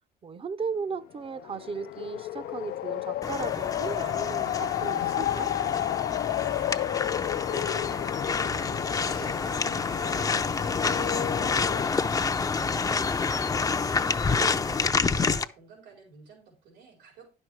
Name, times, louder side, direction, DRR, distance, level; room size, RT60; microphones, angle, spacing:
voice 1, 0.2-5.5 14.3-14.6, right 5 dB, 35° right, 0.8 m, -36 dB
sound 1, 1.3-11.9, left 13 dB, 65° left, 0.5 m, -32 dB
sound 2, 3.2-15.4, left 4 dB, 20° left, 0.6 m, -28 dB
voice 2, 6.3-13.5 14.3-17.3, right 5 dB, 90° right, 4.5 m, -51 dB
10.5 x 6.3 x 4.7 m
cardioid pair, 110°, 17 cm